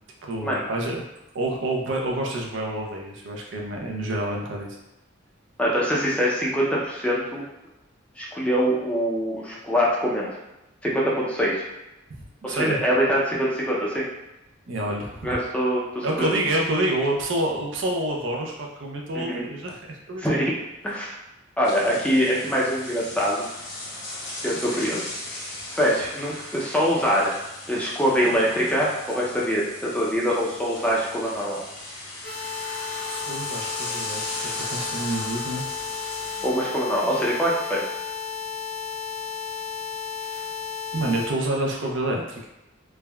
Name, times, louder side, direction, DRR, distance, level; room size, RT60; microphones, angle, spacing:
voice 1, 0.2-1.0 1.3-4.8 12.1-12.8 14.7-15.3 16.0-20.5 33.1-34.2 34.7-35.7 36.1-36.4 40.9-42.5, right 1 dB, 65° right, 0 dB, 0.5 m, -28 dB
voice 2, 5.6-7.4 8.2-10.3 10.8-11.6 12.4-14.1 15.2-16.3 19.1-19.4 20.2-20.5 20.8-21.2 21.6-23.5 24.4-25.0 25.7-27.4 27.7-31.6 36.4-37.8, equal, 5° left, -5 dB, 0.4 m, -24 dB
sound 1, 21.6-36.5, left 1 dB, 60° left, 0.8 m, -37 dB
sound 2, 32.2-41.3, left 7 dB, 90° left, 1.2 m, -33 dB
3.4 x 2.1 x 2.2 m, 0.95 s
head